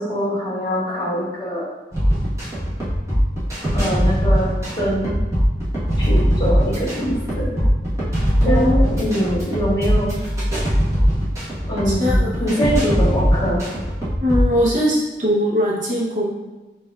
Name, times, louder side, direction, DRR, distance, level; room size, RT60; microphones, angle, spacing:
voice 1, 0.0-1.7 3.7-4.5 4.8-5.1 6.0-7.6 8.4-10.2 11.7-13.6, equal, 25° left, -7 dB, 1.4 m, -23 dB
sound 1, 1.9-14.6, equal, 15° right, 1.1 m, -20 dB
voice 2, 8.4-8.7 11.9-12.5 14.2-16.3, equal, 45° right, -4 dB, 0.8 m, -21 dB
6.6 x 2.5 x 2.3 m, 1.2 s
head